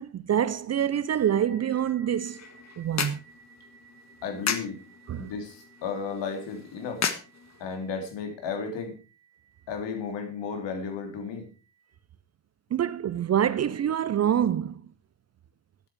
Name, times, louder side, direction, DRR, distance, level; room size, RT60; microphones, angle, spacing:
voice 1, 0.0-2.4 2.8-3.2 5.1-5.3 12.7-14.8, right 9 dB, 30° right, 0.7 m, -26 dB
sound 1, 1.1-10.4, right 4 dB, 10° right, 4.1 m, -57 dB
sound 2, 2.1-8.0, left 6 dB, 35° left, 1.6 m, -36 dB
voice 2, 4.2-4.8 5.2-7.1 7.6-8.9 9.7-11.5, left 5 dB, 55° left, 3.3 m, -34 dB
13.0 x 9.8 x 4.8 m
figure-of-eight pair, 50°, 50 cm